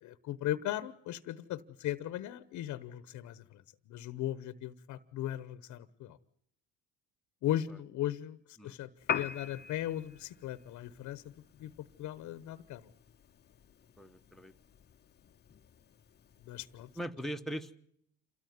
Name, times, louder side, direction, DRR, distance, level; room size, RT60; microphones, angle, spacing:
voice 1, 0.0-6.2 7.4-11.3 11.6-11.7 12.0-12.9 16.4-16.9, left 12 dB, 65° left, 15 dB, 1.1 m, -38 dB
Piano, 9.0-17.0, left 7 dB, 30° left, 0.9 m, -44 dB
voice 2, 14.0-14.5 16.9-17.8, equal, ahead, 6 dB, 1.2 m, -40 dB
28.0 x 13.5 x 9.4 m, 0.71 s
cardioid pair, 115°, 32 cm